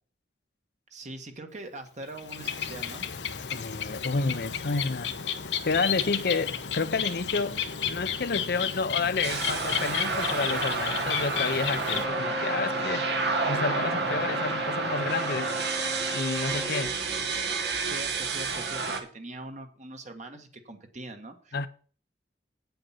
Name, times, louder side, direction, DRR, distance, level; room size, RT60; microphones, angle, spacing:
voice 1, 0.9-3.0 17.8-21.7, right 2 dB, 45° right, 1.4 m, -42 dB
Bird, 2.0-12.0, left 8 dB, 90° left, 1.0 m, -32 dB
voice 2, 3.5-5.1 5.6-7.6 7.8-15.5 16.1-17.0 21.5-21.7, left 4 dB, 60° left, 0.6 m, -30 dB
sound 1, 9.2-19.0, right 4 dB, 70° right, 1.6 m, -30 dB
Wind instrument woodwind instrument, 11.8-16.8, equal, ahead, 1.3 m, -37 dB
8.8 x 7.8 x 5.7 m
head